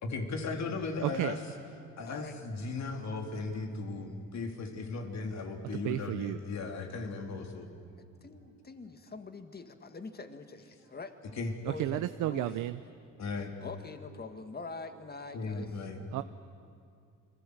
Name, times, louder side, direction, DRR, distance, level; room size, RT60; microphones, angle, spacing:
voice 1, 0.0-1.4 2.0-7.7 11.4-11.5 13.2-13.5 15.3-16.0, left 3 dB, 65° left, 4 dB, 3.3 m, -36 dB
voice 2, 1.0-1.4 5.8-6.4 11.6-12.8 16.1-16.2, right 15 dB, 90° right, 12 dB, 0.7 m, -32 dB
voice 3, 2.0-2.4 8.0-11.1 11.7-12.5 13.6-15.7, left 4 dB, 30° left, 8 dB, 2.0 m, -44 dB
29.0 x 22.0 x 8.0 m, 2.4 s
cardioid pair, 90°, 30 cm